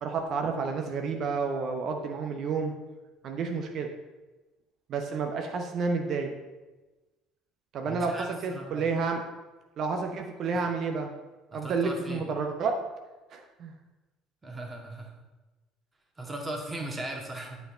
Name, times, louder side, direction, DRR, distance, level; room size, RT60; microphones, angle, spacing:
voice 1, 0.0-2.7 3.2-3.9 4.9-6.3 7.7-9.2 9.8-11.1 11.5-12.8 13.3-13.7, right 4 dB, 50° right, 4 dB, 0.9 m, -30 dB
voice 2, 7.8-8.3 8.5-8.9 11.5-12.2 14.4-15.1 16.2-17.6, right 1 dB, 20° right, 2 dB, 1.9 m, -38 dB
9.1 x 5.7 x 4.3 m, 1.2 s
figure-of-eight pair, 55°, 0 cm